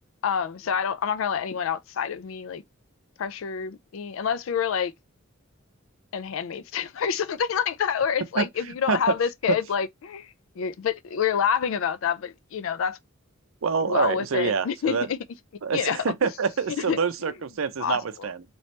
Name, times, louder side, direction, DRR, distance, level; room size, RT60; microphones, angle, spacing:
voice 1, 0.2-2.6 3.2-4.9 6.1-13.0 13.8-15.2 15.7-16.0 16.8-17.0 17.2-17.3 17.8-18.3, left 7 dB, 70° left, 0.4 m, -27 dB
voice 2, 13.6-15.1 15.6-18.4, right 5 dB, 75° right, 0.5 m, -26 dB
3.0 x 2.8 x 3.2 m
head